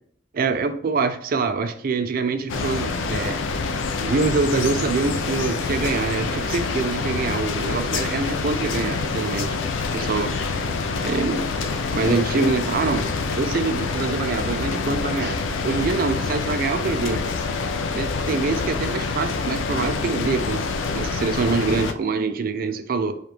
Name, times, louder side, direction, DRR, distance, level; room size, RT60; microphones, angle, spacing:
voice 1, 0.3-3.4 4.0-9.6 9.9-10.3 11.0-11.5 11.9-13.1 13.4-15.4 15.6-17.2 17.9-20.6 20.9-23.2, right 4 dB, 50° right, 10 dB, 0.4 m, -25 dB
sound 1, 2.5-21.9, left 4 dB, 85° left, 0.4 m, -26 dB
4.9 x 2.4 x 2.9 m, 0.63 s
head